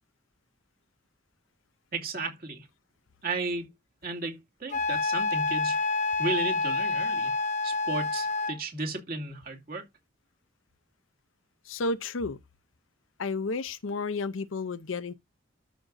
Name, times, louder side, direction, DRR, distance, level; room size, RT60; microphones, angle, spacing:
voice 1, 1.9-2.7 3.2-3.6 4.0-5.8 6.2-7.3 7.6-9.8, right 3 dB, 50° right, 2.4 m, -34 dB
Wind instrument woodwind instrument, 4.7-8.6, left 3 dB, 40° left, 0.7 m, -28 dB
voice 2, 11.7-12.4 13.2-15.1, left 3 dB, 85° left, 0.7 m, -31 dB
13.0 x 6.0 x 2.7 m
head